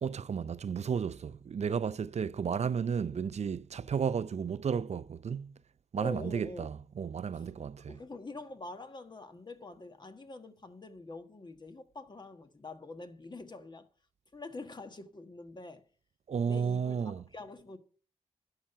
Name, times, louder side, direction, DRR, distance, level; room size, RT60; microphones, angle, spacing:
voice 1, 0.0-5.5 5.9-8.0 16.3-17.2, right 6 dB, 55° right, 0.5 m, -33 dB
voice 2, 6.0-6.7 7.3-7.5 7.9-13.9 14.3-15.8 16.4-17.8, left 2 dB, 35° left, 1.4 m, -45 dB
11.5 x 5.9 x 6.7 m
cardioid pair, 70°, 14 cm